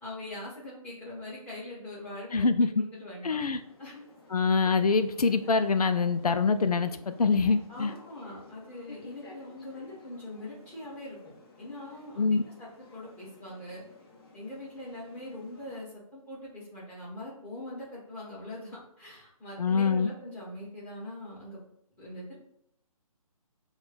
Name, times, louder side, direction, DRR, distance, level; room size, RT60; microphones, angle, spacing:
voice 1, 0.0-3.4 3.8-4.0 7.7-11.2 11.6-13.8 14.3-21.6 22.0-22.3, left 1 dB, 10° left, -8 dB, 1.5 m, -42 dB
voice 2, 2.3-2.7 3.2-3.6 4.3-7.9 12.2-12.4 19.6-20.1, left 4 dB, 85° left, 10 dB, 0.4 m, -25 dB
sound 1, 3.5-15.8, left 2 dB, 40° left, 0.9 m, -52 dB
5.9 x 2.3 x 3.8 m, 0.73 s
figure-of-eight pair, 145°, 19 cm